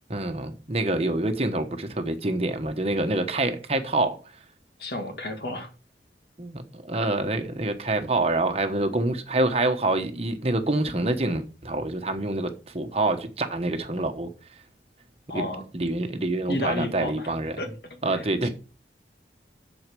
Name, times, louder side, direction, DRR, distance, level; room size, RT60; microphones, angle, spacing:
voice 1, 0.1-4.2 6.4-14.3 15.3-15.5 15.7-17.6 18.0-18.5, right 2 dB, 35° right, 1.2 m, -26 dB
voice 2, 4.8-5.7 15.3-15.6 16.5-17.7 18.1-18.5, left 1 dB, 60° left, 2.0 m, -32 dB
7.8 x 7.3 x 5.3 m
head